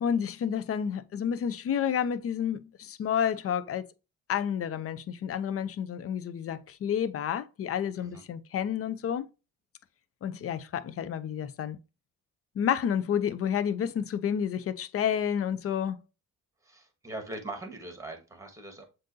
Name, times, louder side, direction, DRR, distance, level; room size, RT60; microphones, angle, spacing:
voice 1, 0.0-3.9 4.3-9.3 10.2-11.8 12.6-16.0, left 8 dB, 50° left, 0.6 m, -30 dB
voice 2, 16.6-18.8, right 2 dB, 10° right, 1.5 m, -41 dB
7.3 x 2.7 x 2.7 m
cardioid pair, 90°, 30 cm